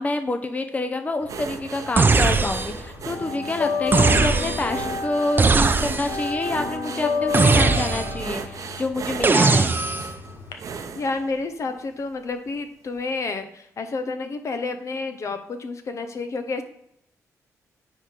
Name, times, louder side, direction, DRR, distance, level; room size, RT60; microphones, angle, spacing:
voice 1, 0.0-9.7, left 2 dB, 25° left, 8 dB, 0.7 m, -27 dB
sound 1, 1.2-2.4 2.6-10.5, left 5 dB, 85° left, 0.8 m, -29 dB
sound 2, 1.3-11.9 12.4-12.6 12.9-13.0, right 6 dB, 65° right, 0.8 m, -37 dB
sound 3, 2.0-2.9 3.9-4.8 5.4-6.2 7.3-8.3 9.2-10.1, right 4 dB, 35° right, 0.7 m, -19 dB
voice 2, 11.0-16.6, left 3 dB, 55° left, 8 dB, 0.9 m, -30 dB
9.6 x 3.8 x 4.5 m, 0.73 s
cardioid pair, 70°, 6 cm